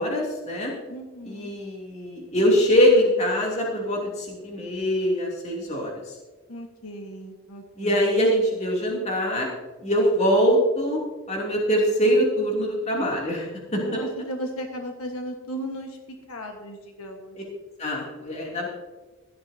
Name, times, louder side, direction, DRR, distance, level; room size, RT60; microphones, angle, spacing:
voice 1, 0.0-0.7 1.2-6.2 7.8-9.5 9.8-11.0 11.3-14.1 17.8-18.7, equal, 30° left, -2 dB, 2.8 m, -23 dB
voice 2, 0.9-1.5 6.5-8.0 13.7-16.0 16.3-17.4, equal, 80° left, 3 dB, 1.4 m, -36 dB
17.0 x 12.5 x 2.8 m, 1.3 s
head